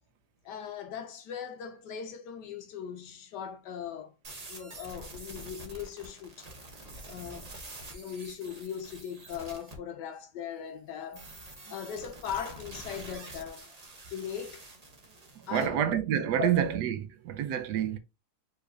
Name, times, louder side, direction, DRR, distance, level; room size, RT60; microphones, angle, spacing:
voice 1, 0.4-4.1 4.5-6.5 7.1-7.6 7.9-11.3 11.7-13.7 14.1-14.7 15.5-15.8 16.3-16.6, left 8 dB, 70° left, 1.0 m, -39 dB
sound 1, 4.2-9.8 11.1-15.7, right 2 dB, 30° right, 0.7 m, -47 dB
voice 2, 15.5-18.0, right 10 dB, 70° right, 1.1 m, -28 dB
4.8 x 3.9 x 2.6 m
omnidirectional pair, 2.2 m